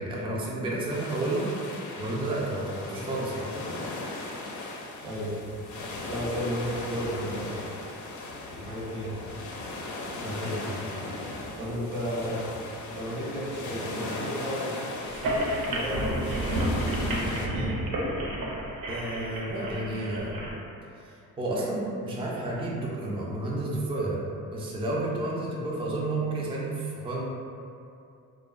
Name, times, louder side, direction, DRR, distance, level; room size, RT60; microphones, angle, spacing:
voice 1, 0.0-1.5 2.0-3.5 10.1-10.8 18.9-20.5 21.0-24.2 24.5-27.2, right 2 dB, 15° right, -5 dB, 0.4 m, -31 dB
sound 1, 0.9-17.5, left 2 dB, 55° left, 0.4 m, -38 dB
voice 2, 5.0-5.4 6.1-7.6 8.5-9.2 11.6-12.4 12.9-17.8, equal, 90° right, -7 dB, 0.9 m, -33 dB
sound 2, 15.1-20.5, right 1 dB, 65° right, 0.6 m, -30 dB
2.5 x 2.1 x 2.4 m, 2.5 s
cardioid pair, 90°, 36 cm